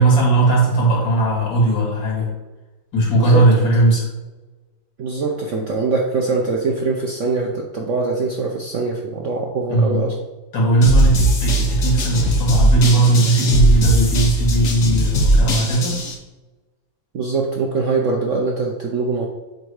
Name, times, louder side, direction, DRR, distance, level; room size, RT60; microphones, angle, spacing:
voice 1, 0.0-2.3 2.9-4.1 9.7-10.0 10.5-16.0, right 2 dB, 75° left, -5 dB, 2.9 m, -17 dB
voice 2, 3.2-3.8 5.0-10.1 17.1-19.3, right 3 dB, 65° right, -1 dB, 0.7 m, -23 dB
sound 1, 10.8-16.1, right 1 dB, 50° left, 1.2 m, -18 dB
7.9 x 2.7 x 4.7 m, 1.2 s
omnidirectional pair, 2.0 m